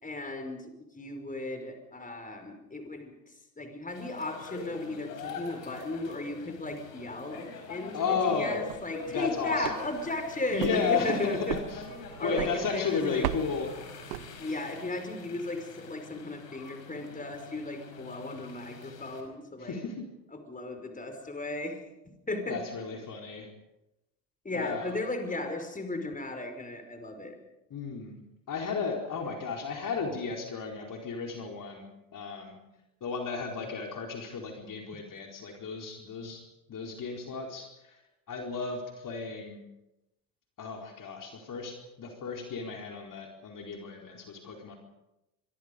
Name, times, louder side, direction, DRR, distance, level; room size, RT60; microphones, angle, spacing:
voice 1, 0.0-11.6 12.2-13.3 14.4-19.8 20.3-21.8 22.3-22.6 24.4-27.4, left 2 dB, 15° left, 6 dB, 5.2 m, -35 dB
sound 1, 3.9-19.2, left 4 dB, 75° left, 5.2 m, -45 dB
voice 2, 7.9-8.7 9.1-9.8 10.5-11.8 12.2-13.7 19.6-20.0 22.5-23.5 24.5-25.0 27.7-28.2 28.5-32.6 33.0-36.4 36.7-38.0 38.3-39.6 40.6-44.8, left 5 dB, 40° left, 1 dB, 4.5 m, -34 dB
sound 2, 8.5-14.8, right 13 dB, 75° right, 1.1 m, -39 dB
25.0 x 25.0 x 5.3 m, 0.93 s
hypercardioid pair, 65°, 48 cm